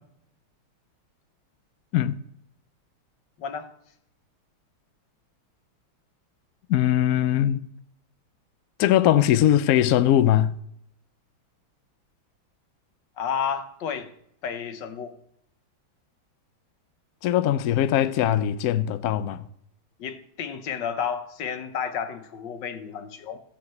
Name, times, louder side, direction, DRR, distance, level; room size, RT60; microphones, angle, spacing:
voice 1, 3.4-3.7 13.2-14.1 14.4-15.1 20.0-23.4, left 7 dB, 65° left, 1.6 m, -31 dB
voice 2, 6.7-7.6 8.8-10.5 17.2-19.5, left 11 dB, 85° left, 0.8 m, -21 dB
15.0 x 5.1 x 7.7 m
omnidirectional pair, 2.2 m